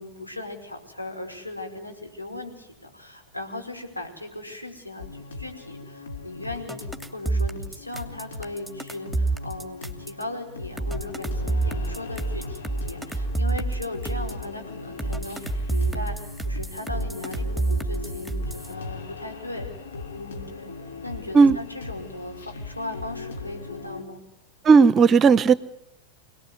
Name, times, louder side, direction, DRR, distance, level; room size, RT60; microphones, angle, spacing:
voice 1, 0.0-16.2 16.4-19.7 20.1-20.7 21.0-24.2, left 2 dB, 85° left, 3 dB, 5.3 m, -38 dB
sound 1, 5.0-24.0, left 4 dB, 65° left, 3.3 m, -39 dB
sound 2, 6.7-10.2 10.8-14.4 15.0-18.7, right 3 dB, 5° left, 2.6 m, -28 dB
voice 2, 24.6-25.5, right 5 dB, 25° right, 19 dB, 0.9 m, -14 dB
27.0 x 19.0 x 9.7 m, 0.84 s
figure-of-eight pair, 90°, 0 cm